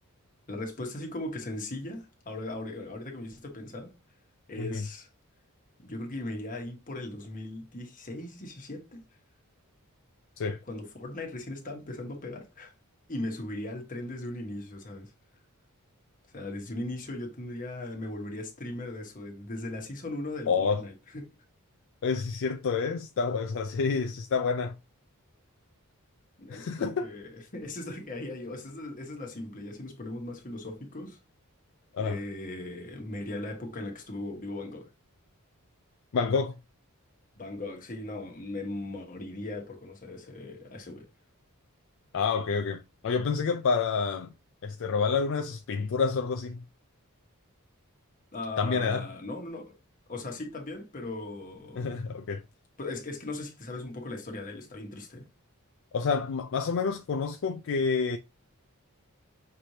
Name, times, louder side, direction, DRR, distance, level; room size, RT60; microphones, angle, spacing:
voice 1, 0.5-3.9 4.5-5.1 5.8-9.0 10.7-12.7 13.1-15.1 16.3-21.2 26.4-31.2 32.0-34.9 37.4-41.1 48.3-49.7 50.1-52.0 52.8-55.3, left 2 dB, 35° left, 1.2 m, -38 dB
voice 2, 20.5-20.8 22.0-24.8 26.5-27.1 31.9-32.2 36.1-36.5 42.1-44.3 44.6-46.6 48.6-49.1 51.8-52.4 55.9-58.2, left 5 dB, 60° left, 0.4 m, -28 dB
5.9 x 3.2 x 2.8 m
head